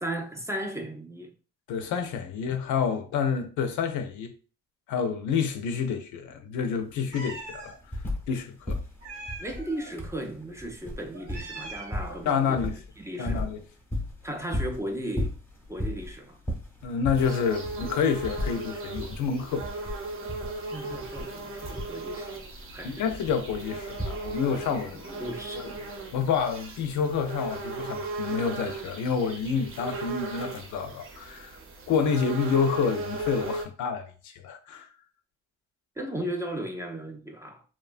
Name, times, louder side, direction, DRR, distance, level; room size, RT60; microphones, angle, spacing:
voice 1, 0.0-1.3 9.4-12.6 13.0-13.5 14.2-15.3 15.7-16.4 20.7-22.4 22.7-23.1 25.1-25.6 36.0-37.6, right 1 dB, 10° right, 0.4 m, -35 dB
voice 2, 1.7-4.3 4.9-7.7 8.3-8.8 12.3-12.8 13.2-13.6 16.8-19.7 22.8-25.1 25.6-25.7 26.1-31.6 31.9-34.9, left 6 dB, 75° left, 0.5 m, -28 dB
sound 1, 6.6-6.7 6.9-8.4 8.6-24.6 25.7-25.8, left 1 dB, 5° left, 0.8 m, -36 dB
Meow, 7.1-7.8 9.0-9.9 11.1-12.3, right 2 dB, 80° right, 1.0 m, -41 dB
sound 2, 17.1-33.7, right 2 dB, 45° right, 0.8 m, -37 dB
3.0 x 2.2 x 2.4 m
cardioid pair, 90°, 30 cm